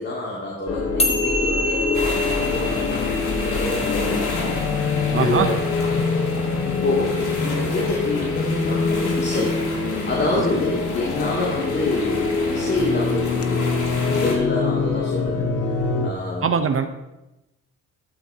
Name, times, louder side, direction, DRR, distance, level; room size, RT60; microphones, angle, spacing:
voice 1, 0.0-4.5 5.1-6.2 6.7-7.1 7.4-9.5 10.0-15.4 16.0-16.6, left 2 dB, 35° left, -5 dB, 2.8 m, -27 dB
sound 1, 0.7-16.1, left 4 dB, 50° left, 1.2 m, -24 dB
sound 2, 1.0-7.6, left 1 dB, 20° left, 1.4 m, -29 dB
sound 3, 1.9-14.3, left 2 dB, 85° left, 3.2 m, -31 dB
voice 2, 5.1-5.5 16.4-16.8, right 6 dB, 45° right, 7 dB, 0.9 m, -21 dB
13.0 x 12.0 x 2.9 m, 0.98 s
cardioid pair, 90°, 30 cm